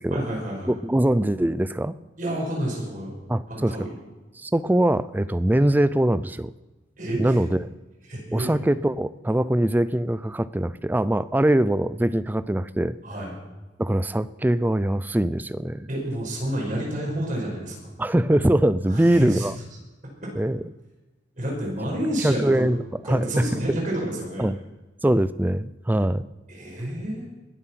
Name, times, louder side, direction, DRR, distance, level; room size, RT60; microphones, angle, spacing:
voice 1, 0.1-0.7 2.2-3.1 3.5-3.9 7.0-7.4 8.1-8.5 13.0-13.3 15.9-17.7 18.9-19.5 20.2-20.3 21.4-22.6 23.0-24.5 26.5-27.2, right 1 dB, 45° right, -2 dB, 5.6 m, -29 dB
voice 2, 0.7-1.9 3.3-3.8 4.4-6.5 7.2-7.7 8.3-13.0 13.8-15.9 18.0-19.6 20.4-20.6 22.2-22.8 23.1-23.8 24.4-24.6 25.0-26.2, right 1 dB, 10° right, 16 dB, 0.4 m, -22 dB
21.5 x 7.6 x 6.0 m, 1.2 s
head